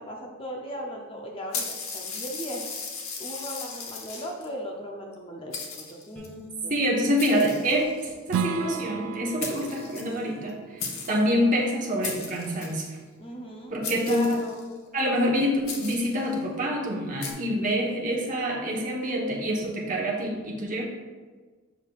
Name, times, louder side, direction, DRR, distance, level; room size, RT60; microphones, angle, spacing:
voice 1, 0.0-2.7 3.2-6.7 13.2-13.8 14.0-14.6, equal, 25° left, 0 dB, 0.6 m, -37 dB
sound 1, 1.5-4.5 5.1-5.2 5.5-6.3 7.2-8.1 9.1-9.2 9.4-10.5 10.8-11.3 12.0-12.9 13.8-14.7 15.7-16.2 17.2-17.3, left 4 dB, 90° left, 1.0 m, -36 dB
Bowed string instrument, 6.2-9.4, left 4 dB, 5° left, 1.5 m, -49 dB
voice 2, 6.7-12.8 13.7-14.3 14.9-20.8, equal, 40° right, -2 dB, 1.1 m, -26 dB
Strum, 8.3-13.5, right 7 dB, 90° right, 0.3 m, -36 dB
7.1 x 5.8 x 2.4 m, 1.4 s
head